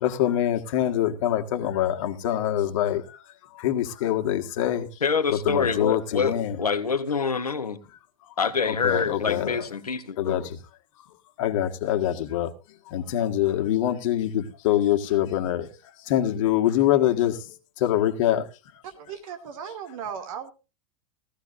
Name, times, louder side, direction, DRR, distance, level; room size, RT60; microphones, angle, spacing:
voice 1, 0.0-3.2 3.5-4.9 5.3-6.6 8.7-9.7 10.2-10.6 11.4-12.5 12.9-15.7 16.1-17.4 17.8-18.5, left 12 dB, 60° left, 1.7 m, -24 dB
voice 2, 5.0-7.8 8.4-10.5, left 5 dB, 90° left, 1.3 m, -26 dB
voice 3, 18.8-20.5, right 7 dB, 65° right, 2.7 m, -36 dB
17.0 x 14.5 x 2.6 m
hypercardioid pair, 90°, 19 cm